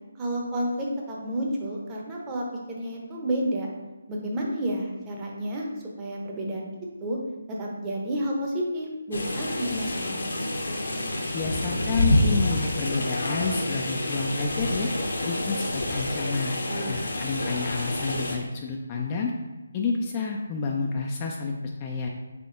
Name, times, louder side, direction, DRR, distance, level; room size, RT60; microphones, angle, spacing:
voice 1, 0.2-3.7 4.1-5.7 6.0-6.7 7.0-7.2 7.5-10.2 16.7-16.9, right 1 dB, 15° right, -2 dB, 0.7 m, -30 dB
sound 1, 9.1-18.4, left 1 dB, 55° left, 0.9 m, -27 dB
voice 2, 11.3-14.9 15.2-16.5 16.9-19.3 19.7-22.1, left 4 dB, 25° left, 0 dB, 0.3 m, -30 dB
3.7 x 3.5 x 3.7 m, 1.2 s
figure-of-eight pair, 145°, 0 cm